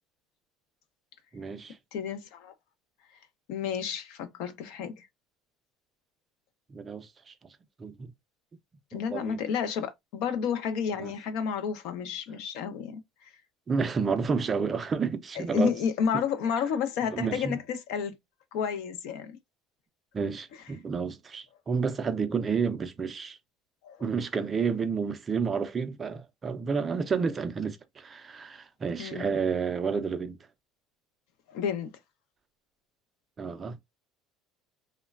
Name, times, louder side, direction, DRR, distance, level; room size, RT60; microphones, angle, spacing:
voice 1, 1.3-1.8 6.7-7.3 7.8-8.1 8.9-9.4 11.0-11.1 13.7-15.7 17.1-17.6 20.1-23.4 24.0-30.4 33.4-33.8, right 5 dB, 20° right, 0.3 m, -30 dB
voice 2, 1.9-2.5 3.5-5.1 8.9-13.3 15.4-18.2 18.5-19.3 23.8-24.0 29.0-29.3 31.5-31.9, left 7 dB, 65° left, 0.5 m, -31 dB
3.0 x 2.1 x 2.3 m
cardioid pair, 160°, 0 cm